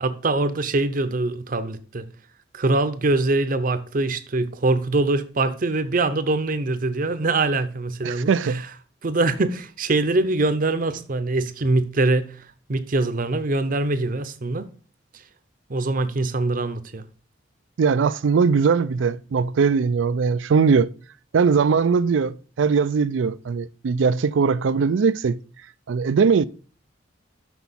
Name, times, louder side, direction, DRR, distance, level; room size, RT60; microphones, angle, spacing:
voice 1, 0.0-2.0 2.5-8.6 9.0-12.4 12.7-14.7 15.7-17.0, right 2 dB, 45° right, 0.7 m, -23 dB
voice 2, 8.0-8.6 17.8-20.9 21.3-25.4 25.9-26.4, right 5 dB, 85° right, 0.4 m, -20 dB
6.1 x 5.8 x 5.5 m
head